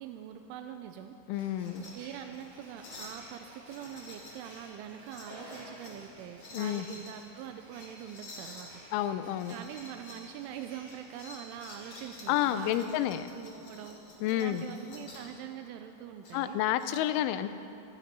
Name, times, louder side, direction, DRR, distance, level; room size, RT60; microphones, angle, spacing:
voice 1, 0.0-1.5 1.9-8.8 9.5-14.0 14.3-16.6, right 9 dB, 85° right, 6 dB, 3.0 m, -44 dB
voice 2, 1.3-1.9 6.5-6.9 8.9-9.5 12.3-13.2 14.2-14.6 16.3-17.5, left 12 dB, 85° left, 11 dB, 2.9 m, -30 dB
sound 1, 1.3-12.8, right 1 dB, 60° right, 6.6 m, -53 dB
sound 2, 1.5-1.9 2.3-2.4 2.8-3.2 3.6-4.6 5.0-6.0 6.4-7.1 7.7-8.7 9.3-10.2 10.5-15.3 16.2-16.9, left 2 dB, 40° left, 2.4 m, -50 dB
14.5 x 14.5 x 6.1 m, 2.7 s
omnidirectional pair, 5.6 m